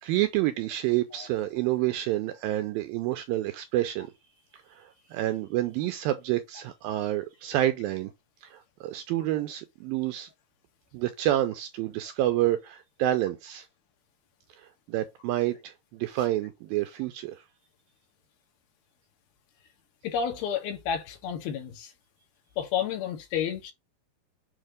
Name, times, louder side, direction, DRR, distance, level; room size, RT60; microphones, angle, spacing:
voice 1, 0.0-4.1 4.7-8.1 8.4-10.3 10.9-13.7 14.6-17.4, right 14 dB, 80° right, 2.2 m, -28 dB
voice 2, 20.0-21.9 22.6-23.7, left 8 dB, 70° left, 3.3 m, -30 dB
7.5 x 2.9 x 5.0 m
omnidirectional pair, 4.6 m